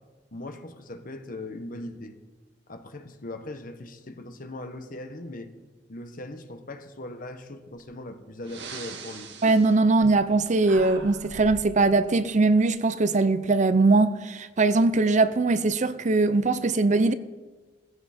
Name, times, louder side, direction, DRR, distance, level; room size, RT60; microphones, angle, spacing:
voice 1, 0.3-2.1 2.7-5.5 5.9-9.3, left 1 dB, 50° left, 1.3 m, -39 dB
Breathing, 7.8-7.9 8.4-10.4 10.6-11.7, right 4 dB, 70° right, 2.0 m, -41 dB
voice 2, 9.4-17.1, right 3 dB, 45° right, 0.6 m, -21 dB
18.0 x 15.5 x 4.4 m
head